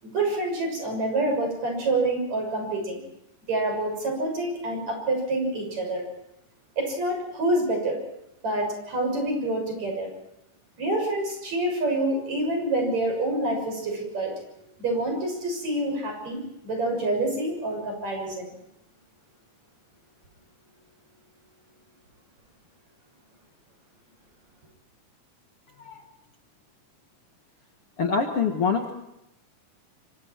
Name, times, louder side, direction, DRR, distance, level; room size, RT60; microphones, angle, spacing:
voice 1, 0.0-3.0 3.5-6.0 6.8-8.0 8.4-10.1 10.8-14.3 14.8-18.5, right 2 dB, 55° right, 2 dB, 7.8 m, -27 dB
voice 2, 28.0-28.9, left 5 dB, 50° left, 4 dB, 2.1 m, -25 dB
26.0 x 25.5 x 4.6 m, 0.83 s
omnidirectional pair, 3.8 m